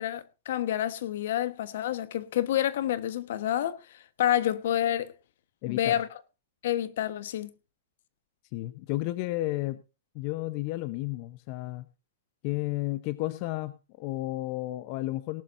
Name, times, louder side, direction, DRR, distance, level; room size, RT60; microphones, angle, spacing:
voice 1, 0.0-5.1 5.7-6.1 6.6-7.5, left 11 dB, 65° left, 1.2 m, -28 dB
voice 2, 5.6-5.9 8.5-9.8 10.1-11.8 12.4-15.4, left 18 dB, 40° left, 0.8 m, -32 dB
18.5 x 12.0 x 2.6 m
hypercardioid pair, 150°, 0 cm